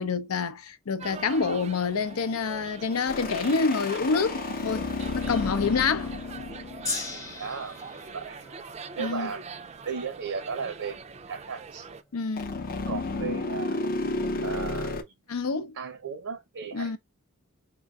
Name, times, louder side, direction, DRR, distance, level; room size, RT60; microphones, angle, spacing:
voice 1, 0.0-4.9 5.1-6.1 9.0-9.3 12.1-12.7 15.3-15.7 16.7-17.0, left 4 dB, 85° left, 0.6 m, -27 dB
sound 1, 1.0-12.0, right 5 dB, 30° right, 0.4 m, -43 dB
sound 2, 3.1-7.6 12.4-15.0, left 3 dB, 45° left, 0.6 m, -32 dB
Gong, 6.8-13.2 14.0-14.1, left 3 dB, 15° left, 0.8 m, -41 dB
voice 2, 7.4-7.8 8.1-8.4 9.0-9.4 9.8-11.0 11.3-11.9 12.9-13.8 14.4-15.0 15.8-17.0, right 6 dB, 70° right, 0.6 m, -35 dB
4.5 x 3.8 x 2.3 m
head